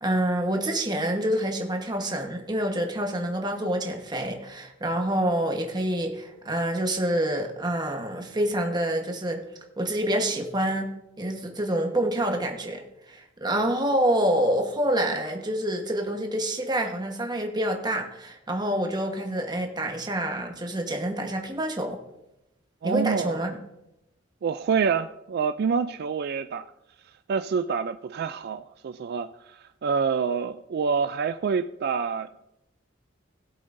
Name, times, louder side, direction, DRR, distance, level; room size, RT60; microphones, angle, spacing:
voice 1, 0.0-9.4 9.8-12.8 13.1-22.0 22.8-23.6, right 1 dB, 20° right, 3 dB, 1.2 m, -27 dB
voice 2, 22.8-23.4 24.4-26.7 27.3-32.5, right 6 dB, 55° right, 11 dB, 0.3 m, -27 dB
17.5 x 7.8 x 2.6 m, 0.90 s
head